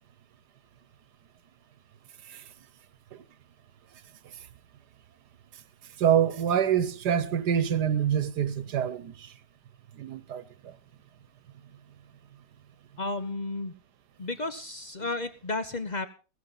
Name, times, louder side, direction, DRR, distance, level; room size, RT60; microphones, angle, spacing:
voice 1, 6.0-9.3 9.9-10.7, right 9 dB, 65° right, 1.5 m, -26 dB
voice 2, 13.0-13.8 14.2-16.1, left 2 dB, 60° left, 0.4 m, -33 dB
16.0 x 15.0 x 4.0 m
omnidirectional pair, 2.0 m